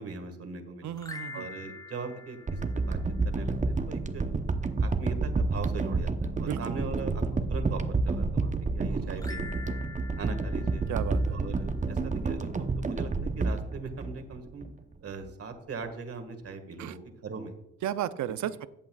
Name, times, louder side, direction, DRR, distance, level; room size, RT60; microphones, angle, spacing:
voice 1, 0.0-0.9 1.3-3.0 3.2-4.2 4.8-7.2 7.5-9.6 10.2-10.8 11.3-14.7 15.0-17.5, right 4 dB, 50° right, 7 dB, 1.8 m, -40 dB
voice 2, 0.8-1.5 6.4-6.7 7.0-7.1 8.9-9.2 10.9-11.4 16.8-17.0 17.8-18.7, right 11 dB, 70° right, 14 dB, 0.6 m, -34 dB
sound 1, 0.9-3.4 9.1-11.8, left 3 dB, 15° left, 0.9 m, -45 dB
sound 2, 2.5-14.7 15.2-15.3, right 3 dB, 25° right, 0.8 m, -29 dB
14.5 x 8.5 x 2.4 m, 0.83 s
cardioid pair, 90°, 30 cm